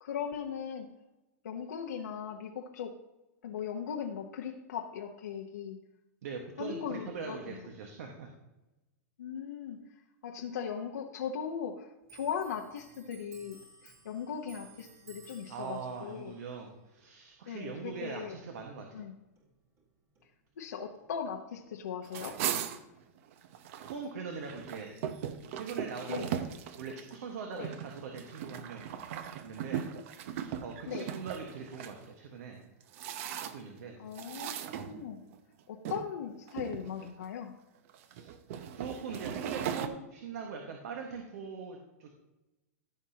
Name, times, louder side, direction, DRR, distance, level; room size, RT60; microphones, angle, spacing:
voice 1, 0.0-0.9 1.4-2.9 3.4-5.8 6.6-7.4 9.2-9.8 10.2-11.9 12.1-13.6 13.8-16.3 17.5-18.3 18.9-19.1 20.6-22.4 26.1-26.3 27.5-27.7 30.9-31.1 34.0-35.2 35.7-37.5, left 7 dB, 85° left, 0 dB, 1.0 m, -38 dB
voice 2, 6.2-8.3 15.4-18.9 23.9-25.0 25.5-26.3 26.8-28.9 29.4-29.9 30.3-32.6 33.5-34.0 38.0-38.3 38.8-42.1, right 5 dB, 70° right, 2 dB, 1.5 m, -42 dB
Clock, 12.0-19.1 19.4-20.7 21.0-21.8, right 5 dB, 35° right, 2.0 m, -59 dB
sound 1, 22.0-24.0 24.3-31.9 32.6-33.8 34.1-35.4 35.8-36.1 36.5-37.2 37.9-39.9, right 9 dB, 55° right, 0.8 m, -38 dB
15.0 x 6.1 x 2.9 m, 1.0 s
hypercardioid pair, 135°, 9 cm